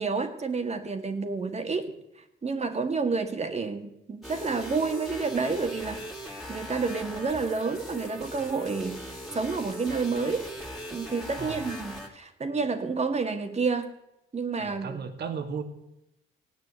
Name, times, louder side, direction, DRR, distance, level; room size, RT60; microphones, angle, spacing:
voice 1, 0.0-1.9 2.4-10.5 10.9-13.9 14.3-15.0, right 4 dB, 35° right, 6 dB, 2.1 m, -29 dB
sound 1, 4.2-12.1, equal, ahead, 3.0 m, -40 dB
voice 2, 14.6-15.6, right 6 dB, 55° right, 6 dB, 2.2 m, -35 dB
17.5 x 9.1 x 8.3 m, 0.87 s
cardioid pair, 90°, 20 cm